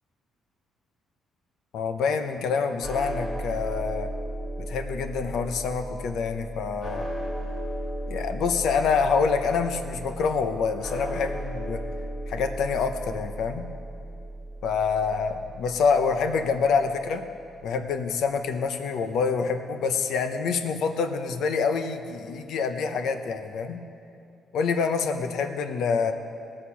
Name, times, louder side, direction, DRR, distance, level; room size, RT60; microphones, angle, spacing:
voice 1, 1.7-4.1 4.6-7.1 8.1-11.8 12.3-13.7 14.6-17.2 17.6-23.8 24.5-26.1, left 5 dB, 70° left, 7 dB, 0.8 m, -26 dB
sound 1, 2.8-17.1, right 1 dB, 20° left, 1.7 m, -35 dB
18.5 x 6.6 x 5.7 m, 2.5 s
cardioid pair, 160°, 0 cm